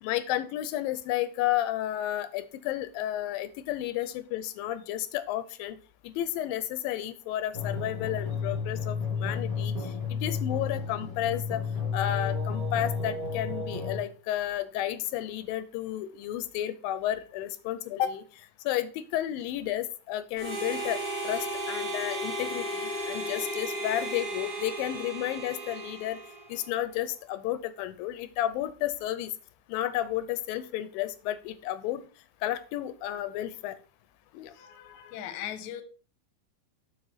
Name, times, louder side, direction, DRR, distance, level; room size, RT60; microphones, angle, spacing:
voice 1, 0.0-5.8 6.0-11.6 11.9-18.2 18.6-21.0 21.2-26.2 26.5-29.3 29.7-32.0 32.4-33.8 34.3-34.5, left 12 dB, 90° left, 13 dB, 2.4 m, -32 dB
sound 1, 7.5-14.0, left 5 dB, 15° left, 1.9 m, -32 dB
Harmonica, 20.4-26.7, right 1 dB, 35° right, 1.8 m, -35 dB
voice 2, 34.5-35.8, left 11 dB, 70° left, 10 dB, 1.9 m, -39 dB
8.0 x 5.0 x 4.0 m, 0.37 s
omnidirectional pair, 4.0 m